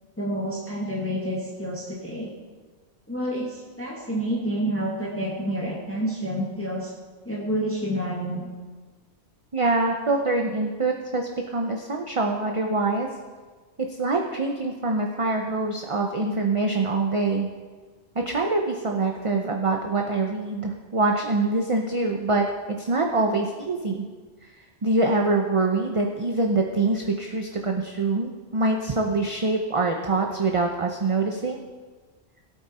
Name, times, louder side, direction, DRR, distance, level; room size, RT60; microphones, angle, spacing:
voice 1, 0.2-2.3 3.1-6.9 7.3-8.5, equal, 10° left, -4 dB, 1.7 m, -29 dB
voice 2, 9.5-13.1 13.8-17.5 18.1-24.0 24.4-24.5 24.8-31.6, right 3 dB, 30° right, 2 dB, 0.8 m, -24 dB
17.0 x 8.6 x 4.3 m, 1.4 s
omnidirectional pair, 1.1 m